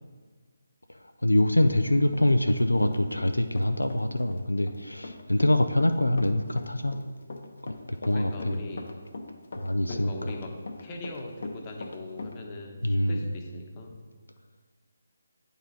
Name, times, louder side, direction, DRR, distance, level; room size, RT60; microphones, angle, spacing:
voice 1, 1.2-7.0 7.6-7.7 8.0-8.6 9.6-10.1 12.8-13.3, left 1 dB, 85° left, 7 dB, 0.4 m, -24 dB
Run, 1.6-3.3 3.6-12.3, left 2 dB, 55° left, 0.8 m, -41 dB
voice 2, 8.1-8.9 9.9-10.5 10.8-14.0, left 2 dB, 25° left, 0 dB, 0.9 m, -40 dB
8.9 x 4.1 x 3.9 m, 1.4 s
figure-of-eight pair, 150°, 0 cm